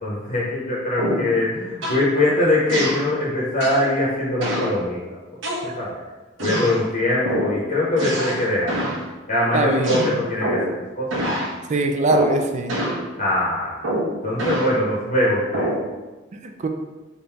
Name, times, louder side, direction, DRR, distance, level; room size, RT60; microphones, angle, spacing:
voice 1, 0.0-5.0 5.8-6.0 6.4-8.9 9.3-11.1 13.2-13.7 14.2-15.7, left 1 dB, 45° left, -5 dB, 0.8 m, -22 dB
sound 1, 1.0-1.3 1.8-2.1 2.7-3.1 3.6-3.9 4.4-4.7 5.4-6.0 6.4-6.8 7.2-7.6 8.0-8.4 8.7-9.0 9.8-10.8 11.1-11.5 12.1-12.4 12.7-13.0 13.8-14.7 15.5-15.8, right 1 dB, 90° right, 1.0 m, -25 dB
voice 2, 9.5-10.0 11.7-12.8 16.4-16.7, right 2 dB, 40° right, 5 dB, 0.4 m, -21 dB
3.6 x 2.6 x 4.5 m, 1.2 s
head